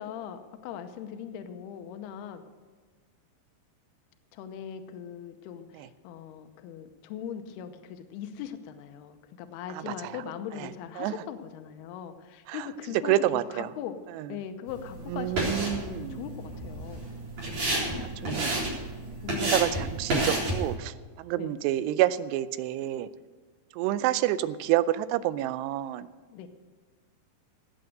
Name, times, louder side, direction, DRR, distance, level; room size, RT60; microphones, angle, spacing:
voice 1, 0.0-2.4 4.3-14.0 14.3-17.1 18.2-18.7 19.2-19.8 21.4-21.6 26.3-26.5, left 8 dB, 80° left, 8 dB, 2.7 m, -40 dB
voice 2, 13.1-13.7 14.2-14.3 15.1-16.2 17.8-18.6 19.4-20.9 21.2-23.1 23.8-26.1, right 13 dB, 90° right, 15 dB, 2.7 m, -28 dB
sound 1, 14.7-20.7, right 1 dB, 50° right, 5.2 m, -31 dB
17.5 x 8.1 x 6.6 m, 1.4 s
omnidirectional pair, 4.7 m